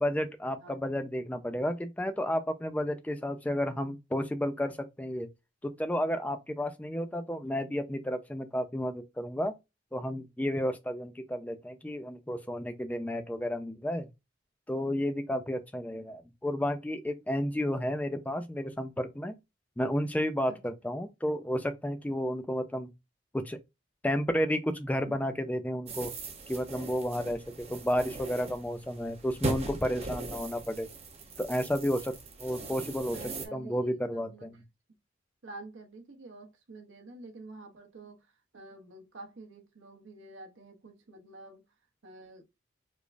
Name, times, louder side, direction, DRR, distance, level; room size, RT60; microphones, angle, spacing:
voice 1, 0.0-5.3 5.6-9.5 9.9-14.1 14.7-19.4 19.8-22.9 23.3-23.6 24.0-26.1 26.5-30.9 31.4-32.1 32.4-33.2 33.5-34.6, equal, 10° left, 0.3 m, -32 dB
sound 1, 25.9-33.5, right 3 dB, 30° right, 0.8 m, -40 dB
voice 2, 33.0-34.6 35.4-38.3 38.5-41.6 42.0-42.4, right 2 dB, 75° right, 0.9 m, -49 dB
4.9 x 2.0 x 2.5 m
head